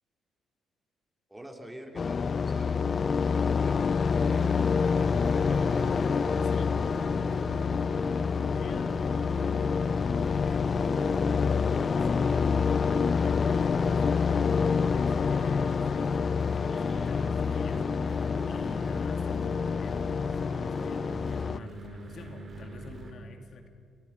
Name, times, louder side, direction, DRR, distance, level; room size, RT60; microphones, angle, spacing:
voice 1, 1.3-2.9 3.2-4.6, equal, 10° right, 3 dB, 3.5 m, -45 dB
sound 1, 2.0-21.6, left 5 dB, 40° left, 0.6 m, -27 dB
sound 2, 4.2-23.1, right 2 dB, 45° right, 4.8 m, -43 dB
voice 2, 5.9-23.7, left 3 dB, 60° left, 5 dB, 2.6 m, -48 dB
30.0 x 22.0 x 5.9 m, 2.3 s
cardioid pair, 90°, 0 cm